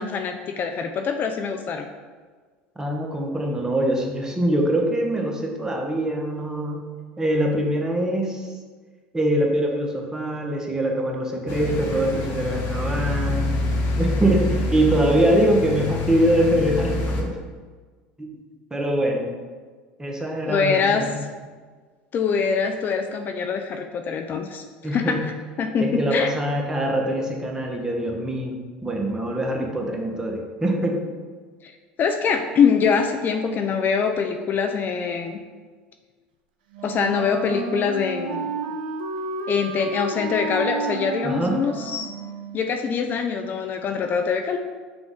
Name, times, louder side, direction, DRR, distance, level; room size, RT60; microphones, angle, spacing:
voice 1, 0.0-1.9 20.5-21.2 22.1-25.3 25.6-26.4 31.6-31.7 32.0-35.4 36.8-38.5 39.5-42.1 42.5-44.6, left 6 dB, 40° left, 5 dB, 0.4 m, -24 dB
voice 2, 2.8-6.8 7.2-8.4 9.1-13.6 14.0-17.4 18.2-18.3 18.7-19.3 20.0-21.2 24.8-25.2 25.8-31.0 41.2-41.6, right 1 dB, 15° right, 1 dB, 0.8 m, -23 dB
sound 1, 11.5-17.2, left 2 dB, 60° left, 0.8 m, -26 dB
Wind instrument woodwind instrument, 36.7-42.6, right 3 dB, 85° right, 0.5 m, -31 dB
6.0 x 2.3 x 3.6 m, 1.5 s
supercardioid pair, 90°, 5 cm